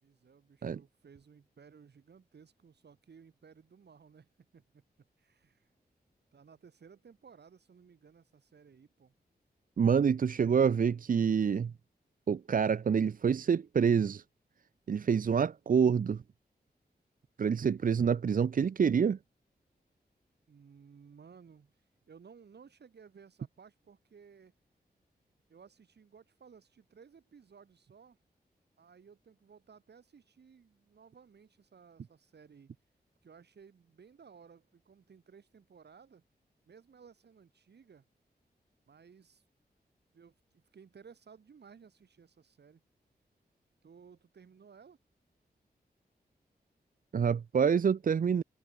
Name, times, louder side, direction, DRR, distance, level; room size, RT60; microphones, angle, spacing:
voice 1, 0.0-4.8 5.2-5.7 6.3-9.1 10.0-10.1 20.5-21.8 22.1-24.5 25.5-28.2 28.8-32.7 33.2-36.2 36.7-38.0 38.9-39.4 40.1-42.8 43.8-45.0, right 6 dB, 85° right, 5.1 m, -57 dB
voice 2, 9.8-11.7 12.3-14.2 14.9-16.2 17.4-19.2 47.1-48.4, right 7 dB, 55° right, 0.5 m, -27 dB
wide cardioid pair, 80°, 17 cm